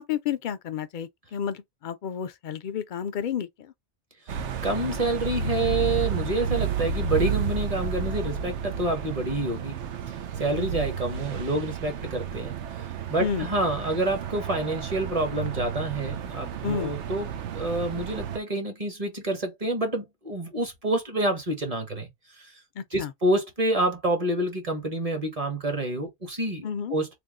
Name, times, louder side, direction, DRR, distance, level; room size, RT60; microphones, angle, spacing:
voice 1, 0.0-3.7 13.2-13.5 16.6-16.9 22.8-23.1 26.6-27.0, left 8 dB, 60° left, 0.5 m, -31 dB
sound 1, 4.3-18.4, right 7 dB, 85° right, 0.9 m, -31 dB
voice 2, 4.6-9.8 10.4-12.5 13.1-22.1 22.4-22.5 22.9-27.2, right 1 dB, 35° right, 1.1 m, -28 dB
3.4 x 2.2 x 3.7 m
omnidirectional pair, 1.2 m